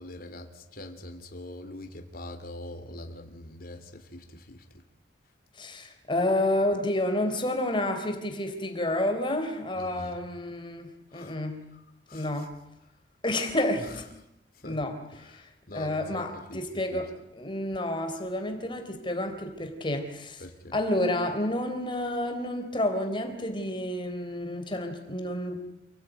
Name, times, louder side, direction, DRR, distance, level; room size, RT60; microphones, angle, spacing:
voice 1, 0.0-4.7 9.8-10.2 11.1-11.4 11.7-11.8 12.1-12.5 13.8-14.0 14.5-14.8 15.1-17.0 20.4-20.7, left 1 dB, 55° left, 6 dB, 3.5 m, -43 dB
voice 2, 5.6-11.6 12.1-12.5 13.2-14.0 14.6-15.0 15.2-15.5 15.7-20.4 20.7-25.6, left 1 dB, 25° left, 5 dB, 3.9 m, -30 dB
29.0 x 20.0 x 9.3 m, 0.87 s
head